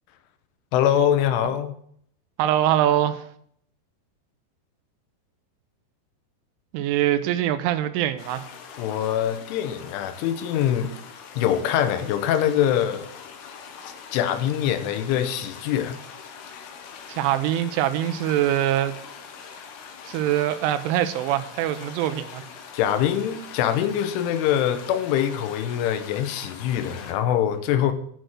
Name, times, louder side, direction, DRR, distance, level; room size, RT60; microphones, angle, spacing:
voice 1, 0.7-1.7 8.8-10.9 11.4-13.1 14.1-16.0 16.5-16.7 22.7-27.9, left 10 dB, 90° left, 3.3 m, -24 dB
voice 2, 2.4-3.2 6.7-8.5 17.1-18.9 20.1-22.4, right 12 dB, 85° right, 3.2 m, -23 dB
sound 1, 8.2-27.1, left 6 dB, 70° left, 2.8 m, -43 dB
9.0 x 6.3 x 6.3 m
omnidirectional pair, 5.5 m